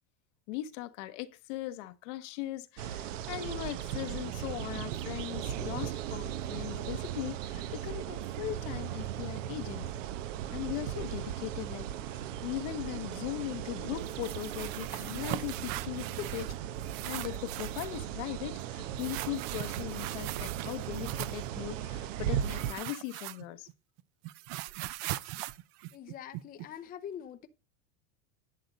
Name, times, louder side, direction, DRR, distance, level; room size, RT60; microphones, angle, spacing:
voice 1, 0.5-9.9 10.5-16.5 17.1-23.7, left 14 dB, 70° left, 1.1 m, -39 dB
sound 1, 2.8-22.7, right 10 dB, 75° right, 1.1 m, -37 dB
sound 2, 14.1-16.5 16.8-18.0 19.0-21.5 22.4-23.7 24.0-26.7, right 16 dB, 50° right, 0.7 m, -40 dB
voice 2, 25.9-27.5, left 9 dB, 25° left, 0.6 m, -44 dB
11.0 x 7.9 x 4.0 m
supercardioid pair, 135°, 38 cm